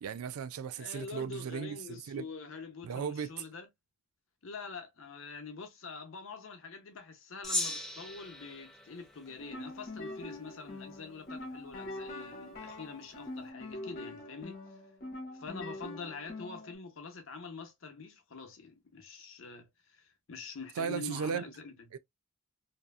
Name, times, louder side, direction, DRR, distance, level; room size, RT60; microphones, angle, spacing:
voice 1, 0.0-2.2 2.8-3.4 20.8-21.5 21.9-22.0, right 6 dB, 90° right, 0.4 m, -36 dB
voice 2, 0.7-3.7 4.4-14.6 15.4-21.7, left 4 dB, 65° left, 0.7 m, -45 dB
Gong, 7.4-10.1, left 1 dB, ahead, 0.4 m, -38 dB
sound 1, 9.3-16.8, left 2 dB, 45° left, 1.1 m, -44 dB
2.7 x 2.4 x 2.3 m
head